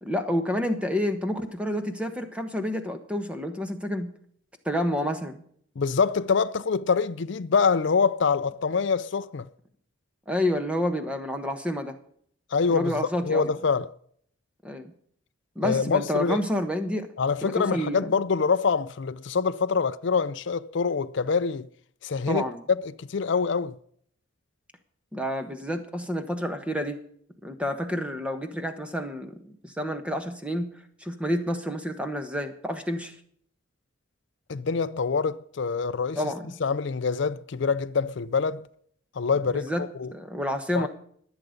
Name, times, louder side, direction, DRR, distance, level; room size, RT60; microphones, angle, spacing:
voice 1, 0.0-4.1 4.6-5.4 10.3-11.9 12.7-13.5 14.6-14.9 15.5-17.1 17.4-18.1 22.3-22.6 25.1-27.0 27.4-30.7 31.0-33.1 36.2-36.5 39.5-39.8 40.1-40.9, equal, 5° right, 1.2 m, -29 dB
voice 2, 5.8-9.5 12.5-12.9 13.3-13.9 15.6-16.4 17.2-21.7 22.0-23.8 34.5-36.2 36.6-38.6 39.2-40.1 40.7-40.9, left 5 dB, 65° left, 0.5 m, -25 dB
21.5 x 8.1 x 5.2 m
head